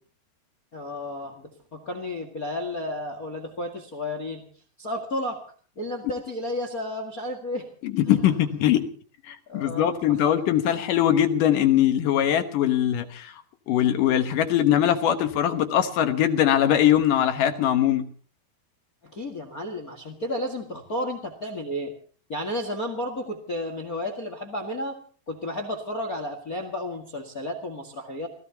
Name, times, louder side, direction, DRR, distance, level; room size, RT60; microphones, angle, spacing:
voice 1, 0.7-4.4 4.8-5.4 5.7-7.7 8.1-8.4 9.5-10.2 10.7-10.8 19.0-21.9 22.3-24.9 25.3-28.3, left 1 dB, 40° left, 6 dB, 1.2 m, -32 dB
voice 2, 7.8-8.9 9.3-13.3 13.7-18.1, left 11 dB, 65° left, 7 dB, 2.3 m, -21 dB
29.0 x 16.5 x 2.9 m, 0.42 s
omnidirectional pair, 4.9 m